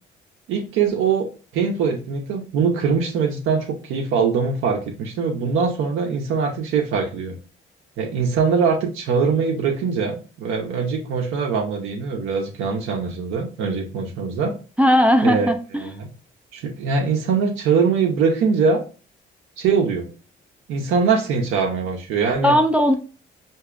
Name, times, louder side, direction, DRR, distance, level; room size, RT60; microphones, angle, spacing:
voice 1, 0.5-7.3 8.0-14.6 15.2-15.5 15.8-16.1 16.5-18.8 19.6-20.1 20.7-22.6, right 5 dB, 90° right, 0 dB, 0.7 m, -22 dB
voice 2, 14.8-15.9 22.4-23.0, equal, 5° right, 5 dB, 0.4 m, -17 dB
4.6 x 2.6 x 2.4 m, 0.36 s
cardioid pair, 90°, 20 cm